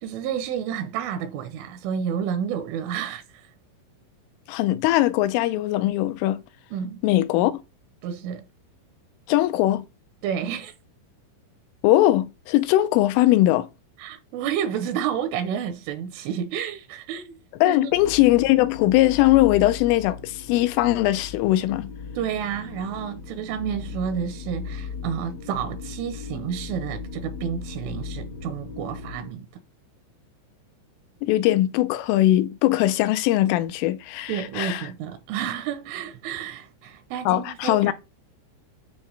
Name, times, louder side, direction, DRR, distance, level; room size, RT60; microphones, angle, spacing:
voice 1, 0.0-3.5 6.7-7.0 8.0-8.5 10.2-10.7 14.0-17.4 17.7-17.9 22.1-29.5 34.3-37.9, right 8 dB, 80° right, 3.3 m, -30 dB
voice 2, 4.5-6.4 7.0-7.5 9.3-9.9 11.8-13.7 17.6-21.9 31.2-34.9 37.3-37.9, left 15 dB, 80° left, 3.1 m, -20 dB
sound 1, 17.9-29.3, left 5 dB, 60° left, 1.3 m, -37 dB
10.0 x 3.4 x 6.7 m
omnidirectional pair, 5.8 m